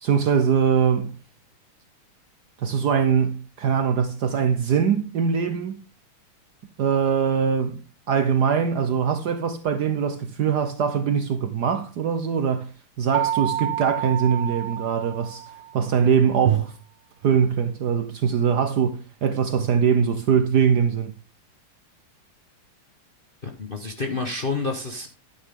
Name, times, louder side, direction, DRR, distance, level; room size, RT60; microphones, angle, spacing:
voice 1, 0.0-1.2 2.6-5.8 6.8-12.7 13.0-16.7 17.2-21.1, right 7 dB, 65° right, 1.2 m, -22 dB
sound 1, 13.1-15.9, right 11 dB, 85° right, 3.2 m, -29 dB
voice 2, 23.4-25.1, left 3 dB, 35° left, 0.9 m, -29 dB
11.5 x 9.6 x 3.7 m
omnidirectional pair, 2.4 m